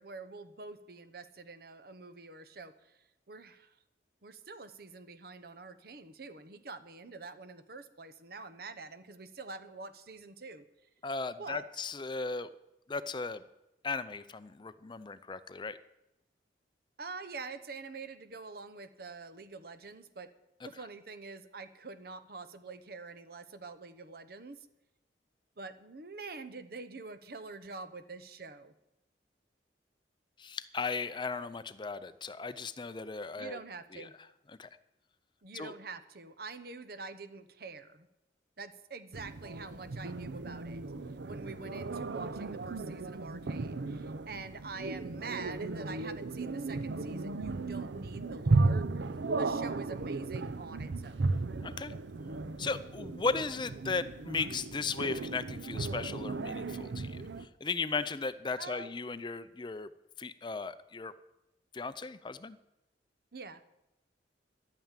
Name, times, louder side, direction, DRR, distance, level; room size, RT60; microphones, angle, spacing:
voice 1, 0.0-3.0 3.3-3.7 4.2-10.7 11.4-11.7 17.0-20.3 20.6-24.7 25.6-28.7 33.4-34.1 35.4-38.1 38.6-40.8 41.3-48.9 49.3-51.2 58.6-58.9 63.3-63.6, right 4 dB, 60° right, 11 dB, 0.9 m, -46 dB
voice 2, 11.0-12.5 12.9-13.4 13.8-15.8 30.4-33.6 33.9-34.1 34.6-34.7 35.5-35.7 51.6-51.9 52.6-59.9 60.2-61.1 61.7-62.6, left 4 dB, 25° left, 13 dB, 0.5 m, -36 dB
sound 1, 39.1-57.5, right 3 dB, 85° right, 0.6 m, -35 dB
11.5 x 9.1 x 9.0 m, 0.91 s
head